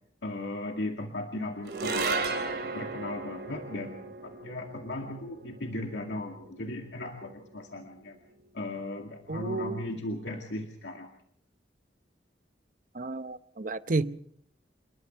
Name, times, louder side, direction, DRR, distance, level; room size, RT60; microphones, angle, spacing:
voice 1, 0.2-8.2 8.5-11.1, left 2 dB, 90° left, 2.3 m, -37 dB
sound 1, 1.7-8.1, right 4 dB, 65° right, 3.8 m, -36 dB
voice 2, 9.3-10.0 12.9-14.4, right 3 dB, 50° right, 0.8 m, -32 dB
28.0 x 21.5 x 4.6 m
head